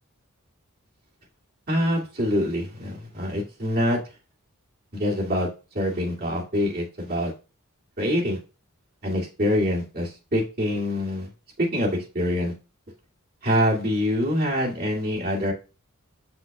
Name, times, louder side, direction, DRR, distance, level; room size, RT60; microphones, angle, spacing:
voice 1, 1.7-4.0 4.9-5.5 5.7-7.3 8.0-8.4 9.0-11.3 11.6-12.5 13.4-15.5, left 1 dB, 45° right, -3 dB, 2.4 m, -25 dB
7.1 x 6.0 x 2.4 m, 0.31 s
head